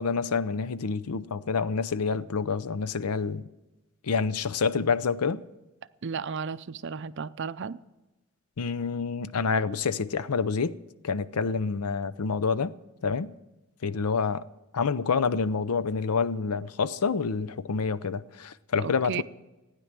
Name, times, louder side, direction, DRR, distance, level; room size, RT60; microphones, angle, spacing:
voice 1, 0.0-3.5 4.0-5.4 8.6-10.8 11.0-12.7 13.0-13.3 13.8-14.4 14.7-19.2, left 5 dB, 85° left, 0.6 m, -27 dB
voice 2, 6.0-7.8 18.8-19.2, right 6 dB, 55° right, 0.5 m, -34 dB
15.5 x 9.9 x 7.4 m
head